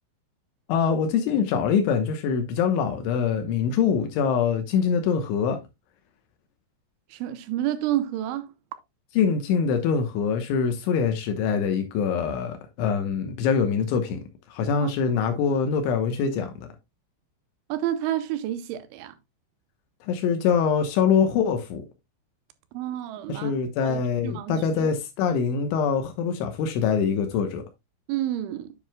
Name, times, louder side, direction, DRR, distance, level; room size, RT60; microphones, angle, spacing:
voice 1, 0.7-5.6 9.2-14.2 14.5-16.7 20.0-21.8 23.3-27.6, left 6 dB, 85° left, 3.5 m, -24 dB
voice 2, 7.1-8.5 14.8-14.9 15.2-15.4 17.7-19.2 22.7-23.5 23.8-24.9 28.1-28.7, right 12 dB, 85° right, 3.1 m, -30 dB
9.9 x 7.4 x 2.2 m
omnidirectional pair, 5.4 m